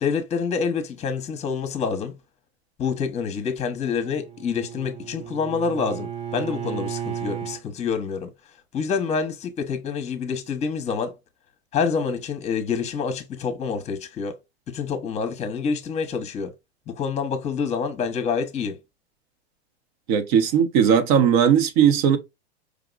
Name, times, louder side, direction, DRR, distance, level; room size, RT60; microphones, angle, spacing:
voice 1, 0.0-2.2 2.8-8.3 8.7-11.1 11.7-14.3 14.7-16.5 16.9-18.8, left 5 dB, 20° left, 0.9 m, -27 dB
Bowed string instrument, 3.8-7.6, right 9 dB, 20° right, 0.4 m, -34 dB
voice 2, 20.1-22.2, right 8 dB, 50° right, 0.9 m, -18 dB
4.9 x 2.9 x 2.4 m
hypercardioid pair, 120°, 32 cm